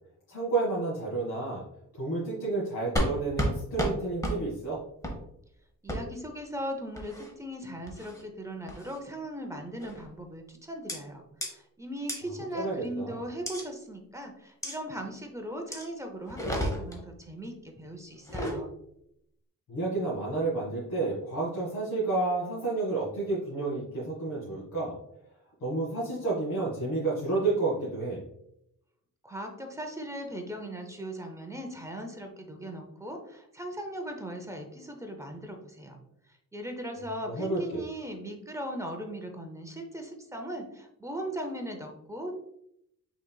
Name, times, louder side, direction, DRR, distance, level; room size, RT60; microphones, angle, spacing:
voice 1, 0.3-1.6 2.0-4.8 12.5-13.2 19.7-24.9 25.6-28.2 37.3-37.6, right 3 dB, 85° left, -6 dB, 1.7 m, -30 dB
sound 1, 3.0-3.1 3.4-3.5 3.8-3.9 4.2-4.4 5.0-5.2 5.9-6.0 7.0-7.3 7.9-8.2 8.7-9.0 9.8-10.1 10.9-11.0 11.4-11.5 12.1-12.2 13.5-13.6 14.6-14.8 15.7-15.9 16.3-17.0 18.2-18.6, equal, 10° left, 0.9 m, -31 dB
voice 2, 5.8-18.7 29.2-36.0 36.5-42.4, equal, 10° right, 3 dB, 0.6 m, -38 dB
5.8 x 3.9 x 2.3 m, 0.76 s
wide cardioid pair, 160°, 33 cm